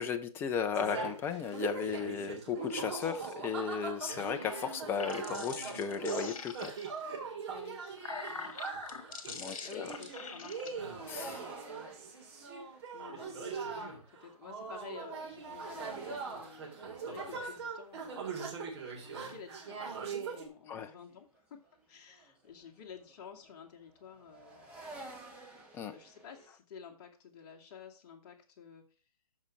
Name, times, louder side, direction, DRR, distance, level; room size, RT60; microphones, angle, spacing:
voice 1, 0.0-6.7 9.3-9.9 11.1-11.4 20.7-20.9 25.7-25.9, left 7 dB, 10° left, 0.7 m, -35 dB
sound 1, 0.7-20.5, right 5 dB, 45° right, 3.4 m, -41 dB
sound 2, 4.8-7.0 7.7-10.7, left 5 dB, 60° left, 1.9 m, -44 dB
voice 2, 7.5-8.5 9.3-11.9 12.9-21.6 21.9-24.7 25.0-28.8, left 7 dB, 30° left, 2.3 m, -52 dB
sound 3, 9.6-20.8 21.1-26.5, right 2 dB, 5° right, 2.0 m, -54 dB
13.5 x 5.4 x 4.7 m
figure-of-eight pair, 140°, 19 cm